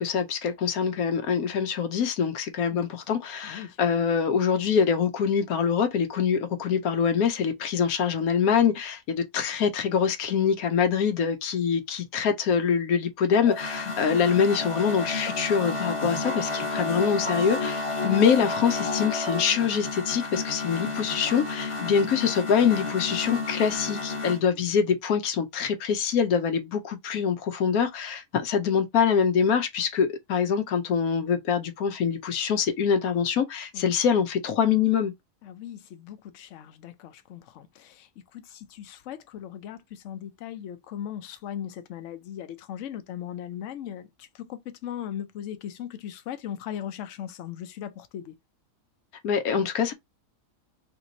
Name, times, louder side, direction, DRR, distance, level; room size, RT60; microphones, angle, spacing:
voice 1, 0.0-35.1 49.2-49.9, left 7 dB, 85° left, 1.2 m, -24 dB
voice 2, 2.7-3.8 13.8-14.1 16.3-16.4 20.9-21.1 33.7-33.9 35.4-48.3, left 10 dB, 65° left, 0.9 m, -39 dB
sound 1, 13.3-24.4, left 3 dB, 25° left, 0.9 m, -31 dB
3.2 x 3.1 x 3.9 m
omnidirectional pair, 1.5 m